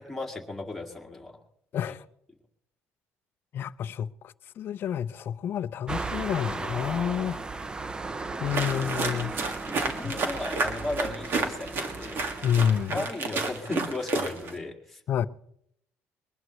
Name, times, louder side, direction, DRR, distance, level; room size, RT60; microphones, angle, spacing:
voice 1, 0.0-1.4 9.7-12.2 12.9-15.0, left 2 dB, 5° left, 2.2 m, -35 dB
voice 2, 1.7-2.0 3.5-7.4 8.4-9.3 9.7-10.2 12.4-13.0 15.1-15.3, left 9 dB, 45° left, 0.5 m, -29 dB
sound 1, 5.9-12.9, right 3 dB, 15° right, 0.6 m, -36 dB
sound 2, 8.5-14.6, right 3 dB, 45° right, 2.0 m, -31 dB
22.0 x 19.0 x 3.2 m
cardioid pair, 130°, 5 cm